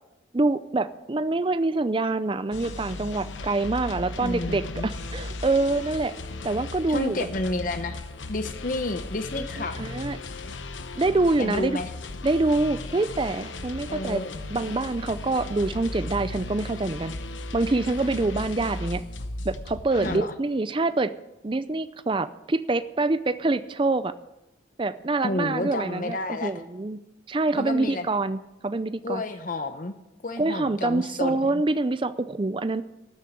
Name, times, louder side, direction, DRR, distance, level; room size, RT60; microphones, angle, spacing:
voice 1, 0.3-6.1 6.4-7.2 9.4-10.2 10.9-11.8 12.2-14.2 14.5-17.1 17.5-19.0 19.4-21.1 21.4-24.1 24.8-27.0 27.3-29.2 30.4-32.8, right 2 dB, 25° right, 13 dB, 0.5 m, -26 dB
sound 1, 2.5-20.2, left 2 dB, 90° left, 0.9 m, -36 dB
voice 2, 4.2-4.9 6.9-8.0 8.3-9.8 11.4-11.9 13.9-14.4 20.0-20.3 25.2-26.5 27.5-28.1 29.0-30.0 30.2-31.6, left 2 dB, 45° left, 8 dB, 0.8 m, -30 dB
12.5 x 7.5 x 9.4 m, 0.92 s
head